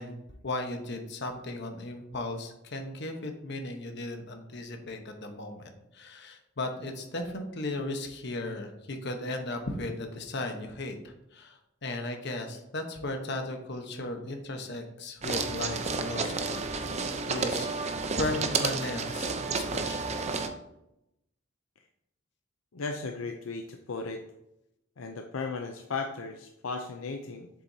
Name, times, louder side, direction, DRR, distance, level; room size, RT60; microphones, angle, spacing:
voice 1, 0.0-16.6 16.9-17.7 18.2-20.1, left 2 dB, 55° left, 5 dB, 1.1 m, -36 dB
sound 1, 15.2-20.5, right 4 dB, 35° right, 0.6 m, -31 dB
voice 2, 22.7-24.2 25.0-27.5, left 4 dB, 75° left, 4 dB, 0.6 m, -36 dB
7.7 x 7.0 x 2.8 m, 0.85 s
head